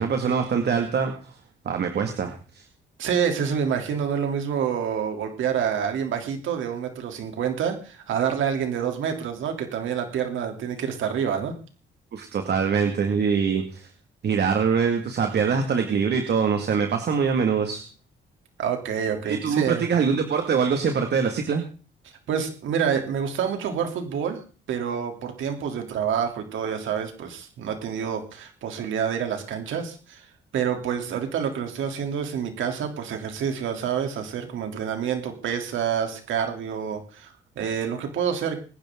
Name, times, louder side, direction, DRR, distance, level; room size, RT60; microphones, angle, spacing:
voice 1, 0.0-1.3 1.6-2.6 12.1-13.9 14.2-17.8 19.2-21.6, right 6 dB, 55° right, 5 dB, 2.2 m, -24 dB
voice 2, 3.0-11.5 18.6-19.9 22.3-24.4 24.7-30.3 30.5-38.6, right 7 dB, 75° right, 5 dB, 3.4 m, -27 dB
23.5 x 10.5 x 3.9 m, 0.38 s
cardioid pair, 90°, 20 cm